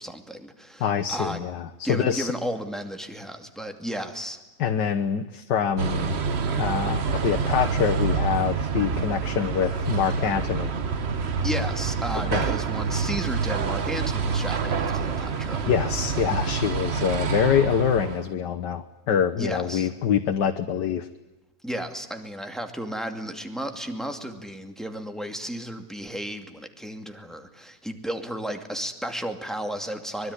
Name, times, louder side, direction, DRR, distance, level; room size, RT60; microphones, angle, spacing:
voice 1, 0.0-1.4 1.8-4.4 11.4-15.7 19.4-19.9 21.6-30.3, equal, ahead, 6 dB, 2.3 m, -33 dB
voice 2, 0.8-2.3 4.6-6.2 6.6-10.7 12.3-12.4 15.7-21.1, left 8 dB, 90° left, 6 dB, 1.7 m, -25 dB
sound 1, 5.8-18.3, right 5 dB, 45° right, 1.3 m, -27 dB
25.0 x 21.5 x 9.8 m, 1.1 s
omnidirectional pair, 1.8 m